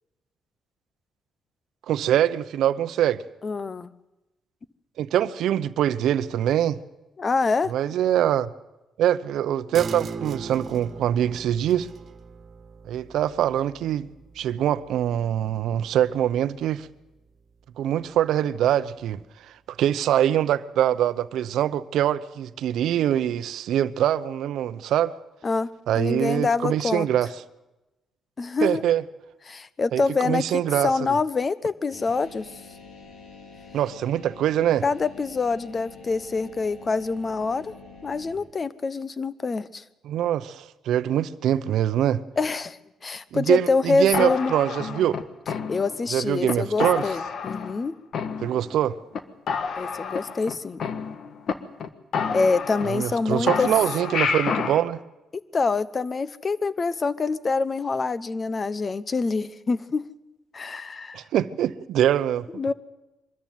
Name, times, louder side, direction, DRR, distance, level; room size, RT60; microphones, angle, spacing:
voice 1, 1.9-3.2 5.0-6.8 7.7-8.5 9.0-11.9 12.9-14.1 14.4-16.9 17.8-19.2 19.8-25.1 25.9-27.3 28.6-29.0 29.9-30.9 33.7-34.8 40.0-42.2 43.3-45.2 46.1-47.0 48.4-49.0 52.9-55.0 61.1-62.5, right 11 dB, 80° right, 0.8 m, -23 dB
voice 2, 3.4-3.9 7.2-7.7 25.4-27.1 28.4-28.8 29.5-32.5 34.8-37.7 38.0-39.8 42.4-44.5 45.7-48.0 49.8-50.8 52.3-53.7 55.3-60.1 60.5-61.2 62.5-62.7, left 4 dB, 35° left, 0.9 m, -26 dB
sound 1, 9.7-16.8 17.1-17.2, right 5 dB, 50° right, 1.6 m, -40 dB
sound 2, 31.9-38.4, left 4 dB, 85° left, 4.7 m, -46 dB
sound 3, 44.1-46.1 46.5-46.6 46.8-47.8 48.1-48.8 49.1-49.2 49.5-51.5 51.8-51.9 52.1-53.2 53.5-54.8, left 6 dB, 60° left, 1.5 m, -29 dB
24.0 x 13.5 x 9.4 m
cardioid pair, 90°, 0 cm